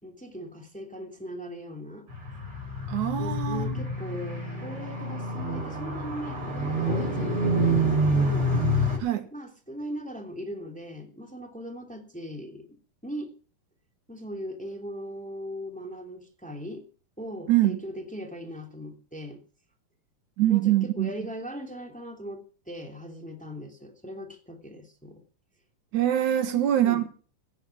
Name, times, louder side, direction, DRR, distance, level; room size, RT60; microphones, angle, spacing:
voice 1, 0.0-2.1 3.2-8.5 9.3-12.8 13.0-13.3 14.1-16.9 17.2-19.4 20.5-25.2 26.4-27.0, equal, 5° left, 2.7 m, -39 dB
Car, 2.1-9.0, right 1 dB, 30° right, 6.6 m, -27 dB
voice 2, 2.9-3.7 9.0-9.3 17.5-17.8 20.4-21.1 25.9-27.1, right 13 dB, 80° right, 2.8 m, -24 dB
17.5 x 8.4 x 7.3 m
omnidirectional pair, 3.4 m